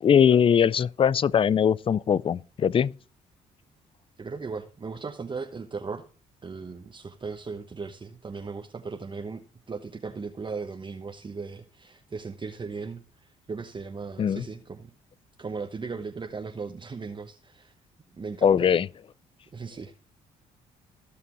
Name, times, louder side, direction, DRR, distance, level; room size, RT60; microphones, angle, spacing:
voice 1, 0.0-2.9 14.2-14.4 18.4-18.9, left 8 dB, 35° left, 0.4 m, -21 dB
voice 2, 4.2-6.0 6.4-9.4 9.7-14.9 15.4-17.7 18.1-18.8 19.5-19.9, right 4 dB, 30° right, 1.0 m, -37 dB
16.5 x 5.8 x 3.1 m
supercardioid pair, 65°, 16 cm